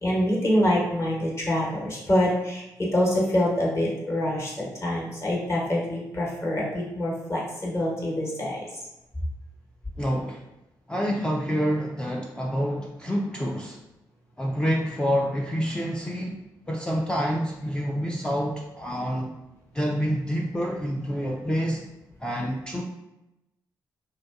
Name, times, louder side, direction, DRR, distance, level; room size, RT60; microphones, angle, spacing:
voice 1, 0.0-2.6 2.9-8.6, left 1 dB, 30° left, -3 dB, 1.1 m, -25 dB
voice 2, 10.0-10.4 10.9-13.8 14.4-16.4 16.7-19.3 19.7-21.8 22.2-22.8, equal, 10° left, -1 dB, 0.4 m, -27 dB
2.5 x 2.2 x 2.4 m, 0.94 s
hypercardioid pair, 40°, 10 cm